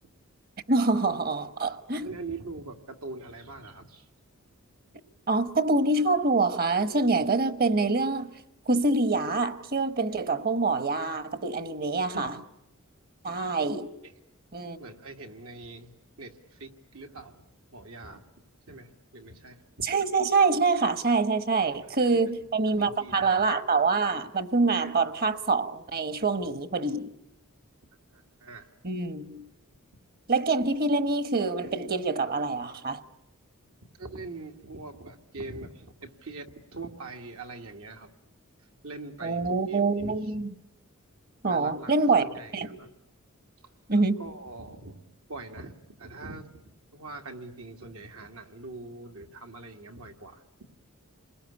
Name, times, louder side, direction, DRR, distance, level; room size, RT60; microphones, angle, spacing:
voice 1, 0.7-2.1 5.3-8.3 8.7-12.3 13.2-13.9 14.5-14.8 19.8-27.1 28.8-29.5 30.3-33.0 39.2-40.5 41.4-42.8 43.9-44.2, right 3 dB, 45° right, 1.2 m, -25 dB
voice 2, 2.0-4.1 12.1-12.3 14.8-15.9 16.2-17.4 17.7-18.2 18.7-19.6 21.7-21.9 22.3-22.4 22.8-23.4 28.1-28.7 34.0-38.1 38.8-40.2 41.5-42.9 44.2-45.0 45.3-46.5 46.9-50.4, right 3 dB, 80° right, 2.1 m, -42 dB
28.5 x 21.0 x 9.9 m
head